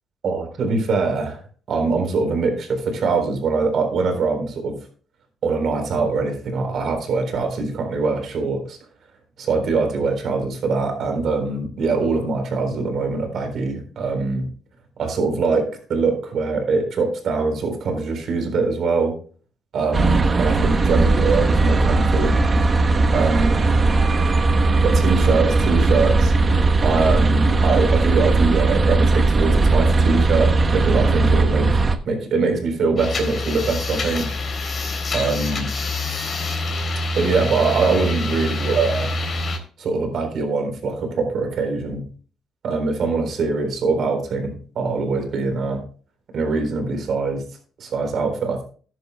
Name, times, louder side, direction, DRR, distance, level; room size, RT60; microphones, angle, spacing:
voice 1, 0.2-1.4 1.7-4.8 5.4-8.8 9.4-14.5 15.0-19.1 19.7-22.4 23.1-23.6 24.8-26.3 26.8-34.3 35.1-35.7 37.2-39.1 39.8-42.0 42.6-45.8 46.3-47.4 47.8-48.6, right 4 dB, 65° right, 5 dB, 3.8 m, -23 dB
sound 1, 19.9-32.0, right 3 dB, 35° right, 1.0 m, -18 dB
sound 2, 33.0-39.6, left 2 dB, 45° left, 3.5 m, -26 dB
14.5 x 10.5 x 2.2 m, 0.40 s
cardioid pair, 90°, 0 cm